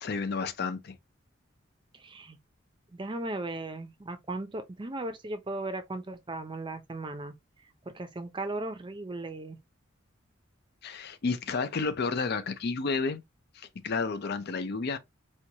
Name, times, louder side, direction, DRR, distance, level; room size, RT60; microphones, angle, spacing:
voice 1, 0.0-1.0 10.8-13.2 13.5-15.0, left 4 dB, 50° left, 0.5 m, -31 dB
voice 2, 1.9-2.4 2.9-7.3 7.9-9.6, right 2 dB, 25° right, 0.5 m, -37 dB
4.4 x 2.3 x 2.8 m
head